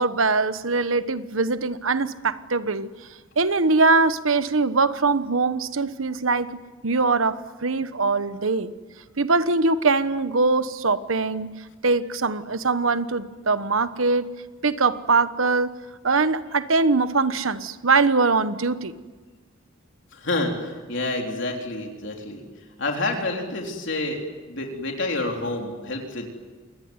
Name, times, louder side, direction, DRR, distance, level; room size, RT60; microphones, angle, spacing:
voice 1, 0.0-2.9 3.4-6.5 6.8-8.7 9.2-11.5 11.8-14.2 14.6-15.7 16.0-18.9, right 3 dB, 85° right, 1.2 m, -22 dB
voice 2, 20.1-22.4 22.8-24.2 24.5-26.3, left 2 dB, 65° left, 3.8 m, -28 dB
27.5 x 21.0 x 9.7 m
head